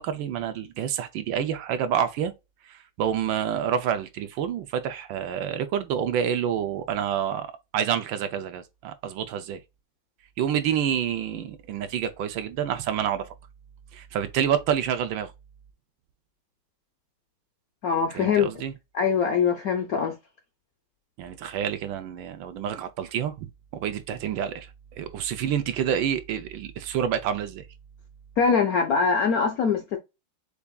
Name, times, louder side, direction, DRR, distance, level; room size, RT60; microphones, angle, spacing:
voice 1, 0.0-2.3 2.6-9.6 10.4-13.3 13.9-15.3 18.1-18.7 21.2-24.7 25.0-27.7, right 9 dB, 75° right, 1.3 m, -28 dB
voice 2, 17.8-18.5 18.9-20.1 28.4-30.0, left 6 dB, 70° left, 0.8 m, -23 dB
6.8 x 2.6 x 2.3 m
omnidirectional pair, 2.3 m